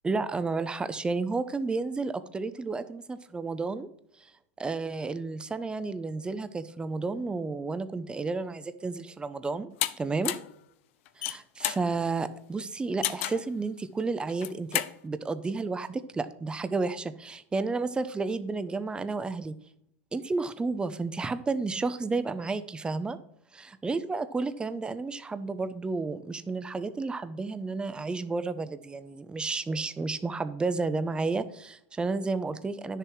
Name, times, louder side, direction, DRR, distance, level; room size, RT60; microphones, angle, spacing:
voice 1, 0.0-3.9 4.6-9.7 10.0-10.3 11.2-19.5 20.1-23.2 23.5-33.0, right 3 dB, 10° right, 13 dB, 0.7 m, -31 dB
sound 1, 9.8-9.9 10.2-10.5 11.1-11.8 13.0-13.5 14.3-14.9, left 15 dB, 70° left, 0.7 m, -30 dB
10.5 x 6.7 x 4.6 m, 0.72 s
supercardioid pair, 120°, 7 cm